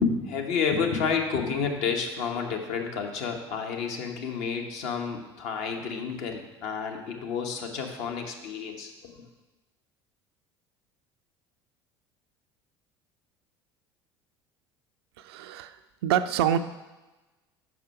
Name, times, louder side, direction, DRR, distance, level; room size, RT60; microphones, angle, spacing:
voice 1, 0.0-9.2, left 6 dB, 55° left, 3 dB, 1.0 m, -30 dB
voice 2, 15.2-15.7 16.0-16.6, right 10 dB, 65° right, 10 dB, 0.4 m, -25 dB
5.5 x 4.9 x 5.4 m, 1.1 s
figure-of-eight pair, 65°, 14 cm